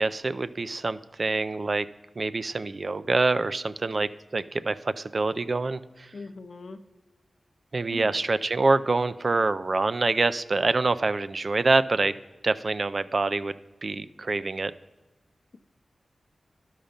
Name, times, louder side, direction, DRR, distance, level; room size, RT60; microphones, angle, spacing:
voice 1, 0.0-1.9 2.2-6.1 7.7-12.1 12.4-14.7, right 3 dB, 50° right, 13 dB, 0.3 m, -26 dB
voice 2, 6.1-6.8 7.9-8.2, left 3 dB, 60° left, 7 dB, 0.6 m, -40 dB
12.0 x 5.6 x 5.1 m, 1.1 s
wide cardioid pair, 85°, 0 cm